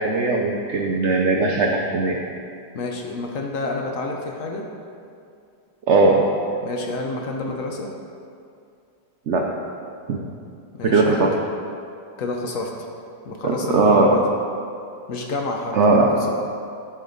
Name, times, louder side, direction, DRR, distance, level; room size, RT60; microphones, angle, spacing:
voice 1, 0.0-2.2 5.9-6.3 9.3-9.5 10.1-10.2 10.8-11.3 13.4-14.3 15.7-16.2, right 3 dB, 75° right, 0 dB, 0.6 m, -18 dB
voice 2, 2.7-4.7 6.6-8.0 10.7-11.2 12.2-12.7 13.2-14.2 15.1-16.3, left 3 dB, 60° left, 1 dB, 0.9 m, -29 dB
10.0 x 5.6 x 4.0 m, 2.4 s
omnidirectional pair, 2.0 m